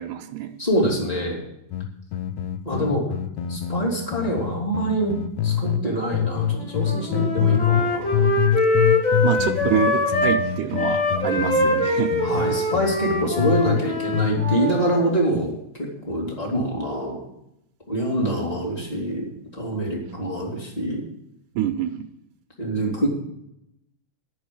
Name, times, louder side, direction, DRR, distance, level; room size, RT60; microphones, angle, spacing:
voice 1, 0.0-0.6 9.2-12.2 21.6-22.1, right 10 dB, 80° right, 3 dB, 2.2 m, -26 dB
voice 2, 0.6-1.4 2.6-3.0 3.5-5.2 5.4-8.3 12.2-15.5 15.8-17.2 17.9-21.0 22.6-23.1, right 1 dB, 10° left, -2 dB, 2.6 m, -25 dB
sound 1, 1.7-5.8 6.1-13.8 14.1-14.6, left 9 dB, 75° left, 1.8 m, -25 dB
Wind instrument woodwind instrument, 6.6-10.4 10.7-15.0, left 2 dB, 30° left, 2.0 m, -23 dB
12.0 x 6.2 x 8.6 m, 0.79 s
omnidirectional pair, 3.9 m